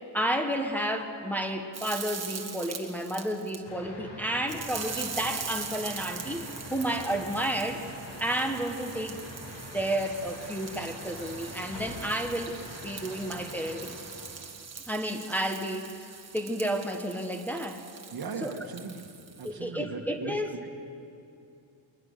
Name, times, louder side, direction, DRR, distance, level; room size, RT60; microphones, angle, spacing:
voice 1, 0.1-7.9 8.2-9.2 9.7-12.6 12.8-14.0 14.9-16.1 16.3-17.8 18.4-18.6 19.4-20.5, right 1 dB, 5° left, 3 dB, 1.2 m, -31 dB
sound 1, 1.7-3.6 4.5-19.5, right 5 dB, 35° right, 1.6 m, -42 dB
sound 2, 3.6-14.5, left 1 dB, 80° left, 6.2 m, -44 dB
voice 2, 18.1-19.0 19.4-20.7, right 5 dB, 55° right, 5 dB, 1.7 m, -38 dB
22.5 x 20.0 x 6.7 m, 2.6 s
wide cardioid pair, 140°, 43 cm